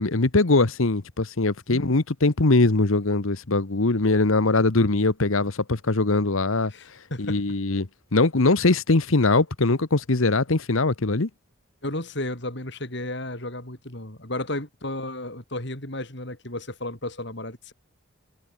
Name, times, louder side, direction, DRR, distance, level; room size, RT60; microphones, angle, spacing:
voice 1, 0.0-6.7 7.2-7.9 8.1-11.3, left 3 dB, 75° left, 1.2 m, -21 dB
voice 2, 6.7-7.4 11.8-17.7, left 1 dB, 55° left, 4.4 m, -33 dB
head